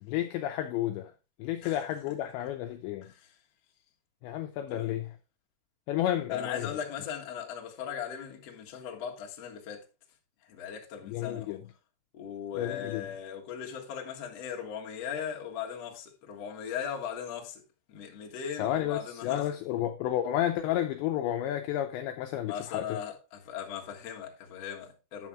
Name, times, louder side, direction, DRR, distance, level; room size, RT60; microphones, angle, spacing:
voice 1, 0.0-1.1 1.4-3.1 4.2-5.1 5.9-6.8 11.0-11.6 12.6-13.1 18.6-23.0, left 12 dB, 85° left, 2.5 m, -31 dB
voice 2, 3.0-3.4 4.7-4.9 6.3-9.8 10.4-11.7 12.1-17.6 17.9-19.5 22.5-25.3, left 8 dB, 70° left, 1.5 m, -38 dB
10.5 x 7.4 x 3.6 m
omnidirectional pair, 5.9 m